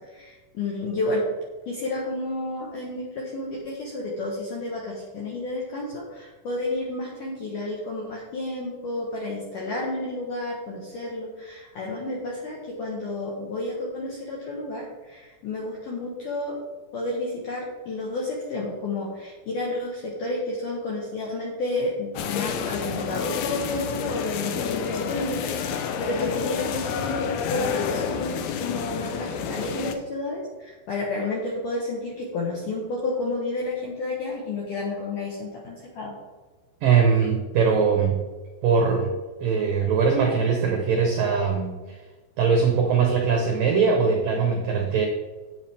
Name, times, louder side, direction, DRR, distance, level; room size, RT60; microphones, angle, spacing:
voice 1, 0.1-1.2 1.7-16.6 16.9-36.1, left 2 dB, 70° left, -3 dB, 2.0 m, -31 dB
sound 1, 22.1-29.9, left 7 dB, 90° left, 2.2 m, -29 dB
voice 2, 36.8-38.2 38.6-39.1 39.4-42.0 42.4-45.1, right 5 dB, 80° right, 2 dB, 1.9 m, -21 dB
10.0 x 8.8 x 3.5 m, 1.3 s
omnidirectional pair, 5.7 m